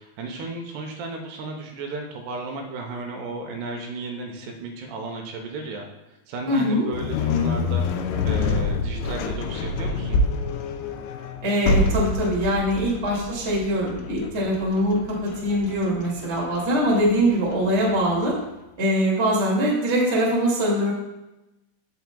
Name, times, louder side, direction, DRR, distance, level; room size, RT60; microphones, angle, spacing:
voice 1, 0.0-5.9 6.3-10.2, right 3 dB, 75° right, 3 dB, 2.8 m, -34 dB
voice 2, 6.5-6.9 11.4-18.3 18.8-20.9, equal, 35° right, -4 dB, 1.0 m, -22 dB
sound 1, 6.9-18.1, left 3 dB, 80° left, 2.5 m, -27 dB
15.5 x 5.8 x 2.2 m, 0.97 s
omnidirectional pair, 5.2 m